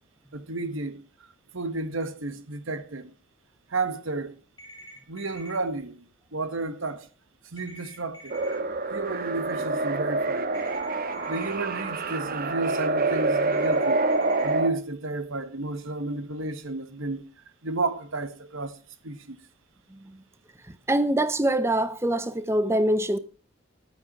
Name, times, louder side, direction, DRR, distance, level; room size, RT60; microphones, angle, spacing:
voice 1, 0.3-1.0 1.5-3.1 3.7-4.3 5.1-6.0 6.3-7.1 7.5-8.4 8.9-10.5 11.0-14.0 14.4-17.2 17.6-18.8 19.0-19.4, right 3 dB, 65° right, 1.3 m, -32 dB
sound 1, 4.6-5.6 7.6-8.6 10.5-11.5 13.5-14.5, right 1 dB, 20° left, 3.1 m, -46 dB
sound 2, 8.3-14.7, right 3 dB, 45° right, 1.1 m, -26 dB
voice 2, 20.9-23.2, right 1 dB, 10° right, 0.6 m, -24 dB
11.0 x 9.3 x 5.9 m
head